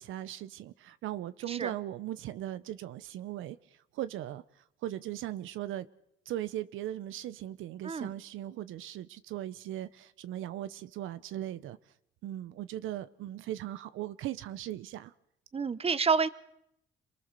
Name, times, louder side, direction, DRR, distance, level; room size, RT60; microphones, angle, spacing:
voice 1, 0.0-3.6 3.9-4.4 4.8-5.9 6.3-11.8 12.2-15.1, right 13 dB, 85° right, 0.8 m, -38 dB
voice 2, 15.5-16.3, right 5 dB, 30° right, 1.0 m, -28 dB
27.0 x 19.5 x 6.8 m
cardioid pair, 90°, 20 cm